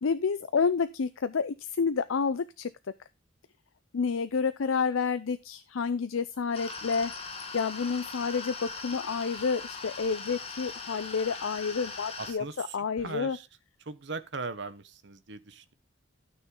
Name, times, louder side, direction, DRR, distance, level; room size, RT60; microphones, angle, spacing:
voice 1, 0.0-2.7 3.9-7.1 7.5-13.4, left 5 dB, 85° left, 0.5 m, -29 dB
sound 1, 6.5-12.3, left 4 dB, 30° left, 1.6 m, -40 dB
voice 2, 12.2-13.5 13.8-15.7, right 4 dB, 60° right, 1.0 m, -39 dB
12.5 x 6.4 x 3.8 m
head